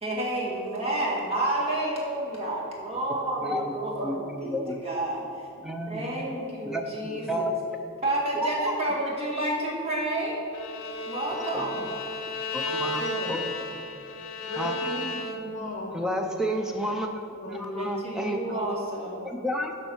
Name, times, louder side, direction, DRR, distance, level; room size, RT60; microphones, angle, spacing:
voice 1, 0.0-5.5 5.9-7.6 8.0-10.4 11.1-11.9 17.8-19.3, right 1 dB, 25° right, -4 dB, 1.8 m, -30 dB
voice 2, 3.4-3.7 4.0-4.8 5.6-6.0 6.6-7.5 11.5-11.7 12.5-13.4 14.6-14.7 15.9-18.6 19.2-19.9, equal, ahead, 3 dB, 0.5 m, -31 dB
Bowed string instrument, 10.5-15.7, left 2 dB, 60° left, 0.7 m, -33 dB
voice 3, 12.9-13.3 14.4-16.0 17.4-18.1 18.6-18.7 19.8-19.9, left 2 dB, 35° left, -2 dB, 1.1 m, -36 dB
7.2 x 5.6 x 7.1 m, 2.7 s
head